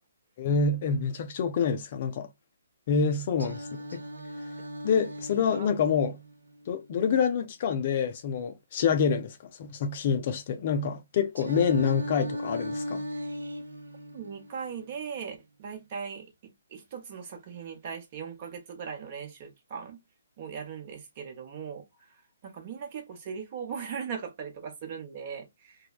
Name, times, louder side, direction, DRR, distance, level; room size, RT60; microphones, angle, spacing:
voice 1, 0.4-2.3 2.9-4.0 4.8-6.2 6.7-13.0, left 6 dB, 40° left, 0.4 m, -27 dB
Singing, 3.4-7.4 11.4-15.4, equal, 75° right, 0.6 m, -38 dB
voice 2, 14.1-20.0 20.4-21.8 22.4-25.9, right 6 dB, 35° right, 0.9 m, -39 dB
3.1 x 2.0 x 2.3 m
figure-of-eight pair, 135°, 0 cm